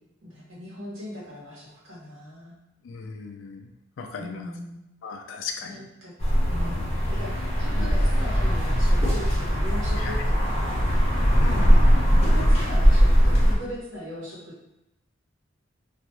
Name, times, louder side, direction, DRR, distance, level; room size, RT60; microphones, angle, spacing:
voice 1, 0.2-2.5 4.2-4.8 5.6-6.1 6.5-10.9 11.5-11.8 12.2-14.7, equal, 90° right, -5 dB, 0.9 m, -39 dB
voice 2, 2.8-3.7 4.0-4.4 5.0-5.8 7.7-7.9 10.0-10.2 11.4-11.8, left 5 dB, 75° left, 5 dB, 0.3 m, -37 dB
sound 1, 6.2-13.5, equal, 35° left, 0.7 m, -20 dB
2.4 x 2.2 x 2.8 m, 0.88 s
head